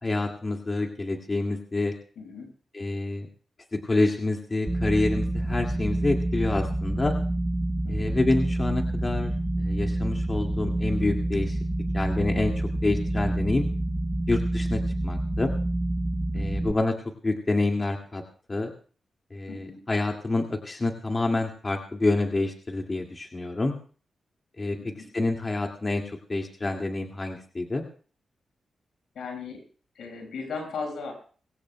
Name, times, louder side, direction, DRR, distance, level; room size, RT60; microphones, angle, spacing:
voice 1, 0.0-1.9 2.7-3.3 3.7-7.1 7.9-9.3 9.6-11.6 11.9-13.7 14.3-15.5 16.3-16.9 17.2-18.2 18.5-18.7 19.3-23.8 24.6-24.8 25.1-27.8, left 2 dB, 35° left, 2 dB, 2.2 m, -27 dB
voice 2, 2.2-2.5 7.8-8.1 15.1-15.2 16.3-16.7 19.5-19.8 24.8-25.0 29.1-29.6 29.9-31.1, left 4 dB, 85° left, 2 dB, 6.1 m, -37 dB
sound 1, 4.7-16.7, right 1 dB, 20° right, 1.2 m, -27 dB
23.0 x 17.0 x 2.2 m, 0.42 s
cardioid pair, 60°, 0 cm